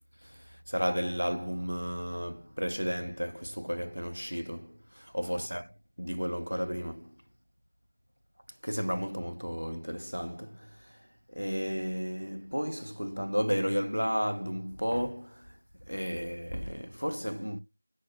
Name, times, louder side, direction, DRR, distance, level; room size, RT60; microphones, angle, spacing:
voice 1, 0.2-7.2 8.6-17.6, equal, 90° right, 0.4 m, -33 dB
5.9 x 2.0 x 2.3 m
figure-of-eight pair, 170°, 0 cm